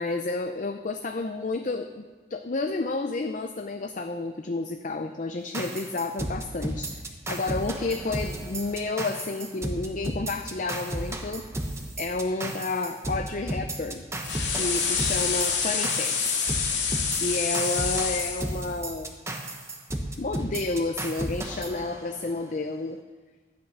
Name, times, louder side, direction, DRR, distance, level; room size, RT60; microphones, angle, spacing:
voice 1, 0.0-11.4 12.0-14.1 14.5-16.2 17.2-19.2 20.2-23.0, left 3 dB, 45° left, 6 dB, 0.5 m, -30 dB
sound 1, 5.5-22.4, right 1 dB, 15° right, 1.0 m, -34 dB
sound 2, 14.2-18.4, left 6 dB, 85° left, 2.1 m, -27 dB
12.0 x 9.6 x 5.9 m, 1.4 s
head